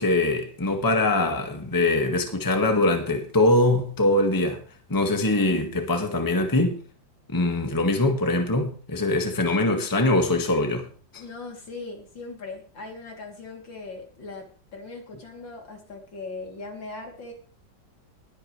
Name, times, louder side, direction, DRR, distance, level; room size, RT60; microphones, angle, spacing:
voice 1, 0.0-4.6 4.9-6.8 7.3-10.9 11.1-11.2, left 2 dB, 10° left, 1.6 m, -23 dB
voice 2, 11.1-14.5 14.7-17.3, left 3 dB, 70° left, 3.8 m, -39 dB
20.5 x 8.8 x 3.3 m
omnidirectional pair, 2.1 m